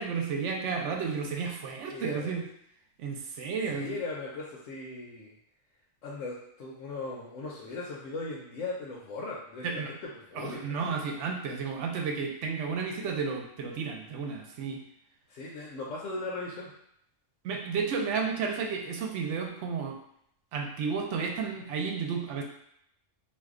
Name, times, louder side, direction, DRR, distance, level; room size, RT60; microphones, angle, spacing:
voice 1, 0.0-2.5 3.0-4.0 9.6-9.9 10.4-14.8 17.4-20.0 20.5-22.4, right 5 dB, 75° right, 1 dB, 0.9 m, -32 dB
voice 2, 1.9-2.4 3.7-5.4 6.0-11.0 15.3-16.7, left 3 dB, 85° left, -4 dB, 1.0 m, -38 dB
2.6 x 2.2 x 3.6 m, 0.72 s
omnidirectional pair, 1.3 m